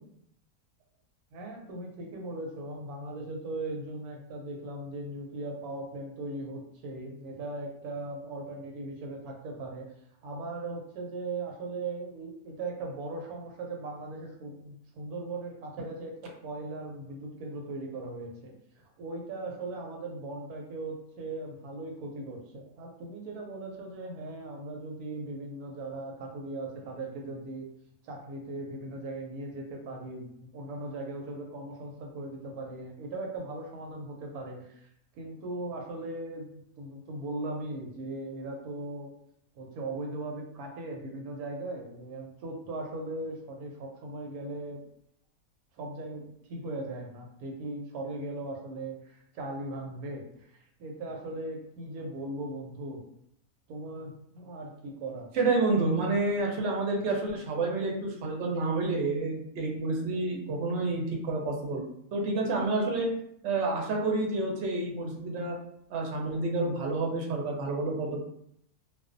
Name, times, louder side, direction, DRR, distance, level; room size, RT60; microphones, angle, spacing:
voice 1, 1.3-9.9 10.2-27.7 28.0-34.9 35.1-39.1 39.5-44.8 45.8-53.0 53.7-55.3, right 2 dB, 85° right, 1 dB, 1.1 m, -38 dB
voice 2, 55.3-63.1 63.4-65.5 65.9-68.2, right 3 dB, 60° right, 0 dB, 0.8 m, -29 dB
2.4 x 2.2 x 2.5 m, 0.72 s
omnidirectional pair, 1.5 m